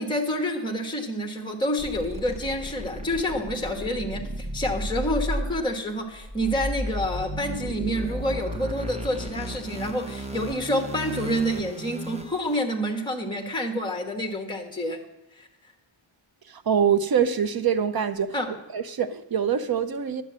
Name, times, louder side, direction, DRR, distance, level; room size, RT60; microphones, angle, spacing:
voice 1, 0.0-15.0 15.3-15.5 18.3-18.5, equal, 10° left, 1.3 m, -28 dB
sound 1, 1.8-12.6, equal, 15° right, 0.7 m, -34 dB
voice 2, 16.5-18.4 18.7-20.2, right 7 dB, 50° right, 0.7 m, -24 dB
12.0 x 7.0 x 7.5 m
wide cardioid pair, 160°, 48 cm